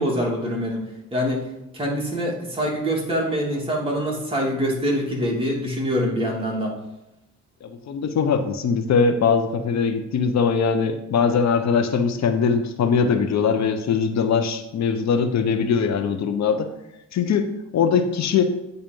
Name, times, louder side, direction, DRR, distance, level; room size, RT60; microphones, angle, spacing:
voice 1, 0.0-1.4 1.7-6.8, equal, 20° right, -3 dB, 2.9 m, -25 dB
voice 2, 7.6-16.7 17.1-18.5, left 6 dB, 65° left, 8 dB, 1.0 m, -21 dB
9.2 x 4.3 x 5.4 m, 0.90 s
cardioid pair, 90°, 30 cm